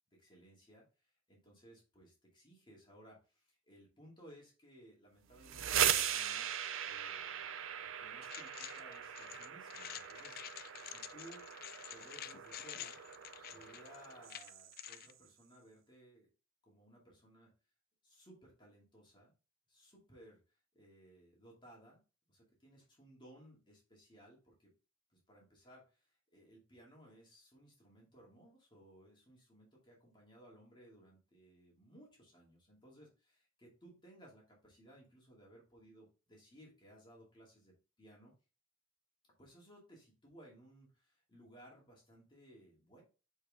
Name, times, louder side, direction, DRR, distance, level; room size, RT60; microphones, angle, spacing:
voice 1, 0.2-6.5 6.8-11.5 11.9-13.0 13.5-16.3 16.6-17.5 18.0-19.3 19.7-22.0 22.3-24.7 25.1-38.3 39.4-43.0, right 1 dB, 25° left, -3 dB, 2.4 m, -60 dB
sound 1, 5.3-15.0, right 9 dB, 70° right, 0.6 m, -39 dB
sound 2, 8.2-15.1, left 12 dB, 45° left, 0.4 m, -49 dB
6.6 x 4.6 x 3.5 m, 0.32 s
head